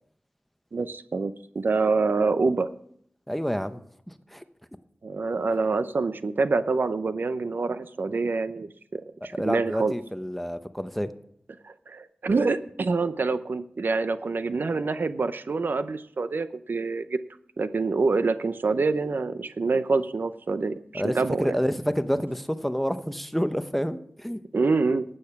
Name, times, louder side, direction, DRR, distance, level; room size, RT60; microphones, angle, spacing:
voice 1, 0.7-2.7 5.0-9.9 11.6-17.2 17.6-21.6 24.5-25.0, right 4 dB, 75° right, 12 dB, 0.6 m, -26 dB
voice 2, 3.3-3.8 4.1-4.4 9.3-11.1 20.9-24.4, equal, 5° left, 10 dB, 0.9 m, -28 dB
11.5 x 8.8 x 5.8 m, 0.67 s
wide cardioid pair, 50°, 3 cm